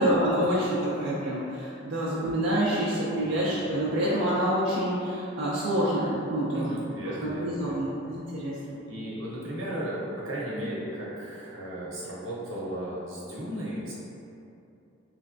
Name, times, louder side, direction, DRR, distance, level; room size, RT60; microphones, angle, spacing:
voice 1, 0.0-6.8 7.2-8.8, right 1 dB, 65° right, -8 dB, 0.5 m, -27 dB
voice 2, 3.2-3.6 6.5-7.9 8.9-13.9, equal, 85° right, -6 dB, 0.9 m, -35 dB
3.2 x 3.1 x 2.6 m, 2.7 s
head